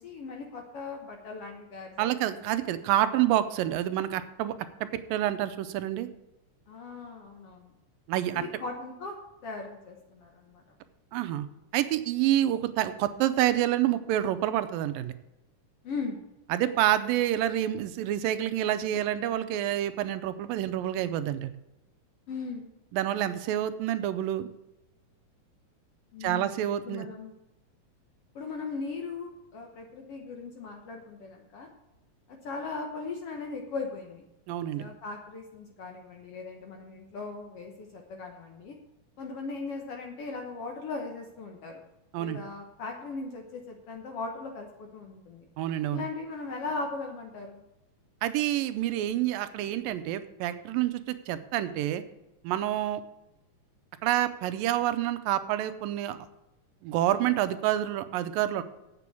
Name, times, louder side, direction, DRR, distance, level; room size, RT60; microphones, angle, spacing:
voice 1, 0.0-2.3 6.7-7.7 8.3-9.1 9.4-10.8 15.8-16.2 22.3-22.7 26.1-27.3 28.3-31.7 32.3-34.2 34.8-38.7 39.2-41.8 42.2-45.5 45.9-47.6, left 4 dB, 60° left, 2 dB, 1.6 m, -38 dB
voice 2, 2.0-4.5 4.8-6.1 8.1-8.4 11.1-11.5 11.7-15.1 16.5-21.5 22.9-24.5 26.2-27.1 34.5-34.8 42.1-42.4 45.6-46.1 48.2-52.0 52.4-53.0 54.0-56.2 56.8-58.6, right 12 dB, 90° right, 12 dB, 2.4 m, -28 dB
8.4 x 6.9 x 8.3 m, 0.93 s
omnidirectional pair, 3.9 m